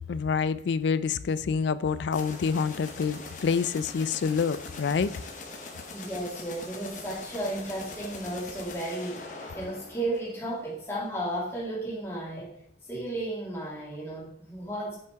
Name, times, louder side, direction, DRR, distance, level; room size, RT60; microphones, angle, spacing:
voice 1, 0.1-5.1, left 5 dB, 70° left, 0.3 m, -27 dB
sound 1, 2.1-10.7, left 3 dB, 40° left, 1.0 m, -42 dB
voice 2, 5.9-12.5 12.9-15.0, right 1 dB, 15° left, 2.2 m, -34 dB
8.1 x 5.7 x 3.5 m
head